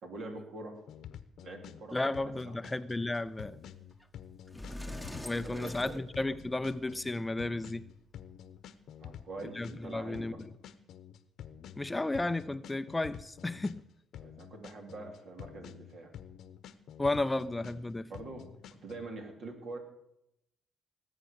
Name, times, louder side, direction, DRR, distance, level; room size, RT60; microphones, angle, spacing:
voice 1, 0.0-0.8 1.4-2.6 5.4-5.9 9.0-10.4 14.2-16.1 18.1-19.8, right 2 dB, 60° right, 3.3 m, -45 dB
sound 1, 0.9-19.1, left 9 dB, 75° left, 0.8 m, -49 dB
voice 2, 1.9-3.6 5.2-7.8 9.5-10.3 11.8-13.8 17.0-18.1, left 2 dB, 15° left, 0.5 m, -33 dB
Sliding door, 4.0-4.1 4.5-6.7, left 1 dB, ahead, 1.1 m, -44 dB
19.0 x 8.1 x 6.7 m
cardioid pair, 90°, 0 cm